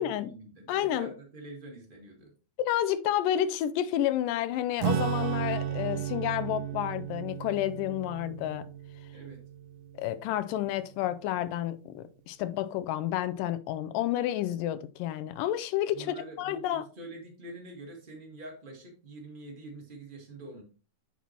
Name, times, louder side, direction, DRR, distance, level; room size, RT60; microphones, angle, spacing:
voice 1, 0.0-2.3 9.1-9.4 15.9-20.6, right 2 dB, 45° right, 0.6 m, -45 dB
voice 2, 0.7-1.1 2.6-8.7 10.0-16.9, left 12 dB, 80° left, 2.2 m, -30 dB
Acoustic guitar / Strum, 4.8-10.7, right 10 dB, 75° right, 2.0 m, -34 dB
8.1 x 6.0 x 2.9 m
omnidirectional pair, 3.9 m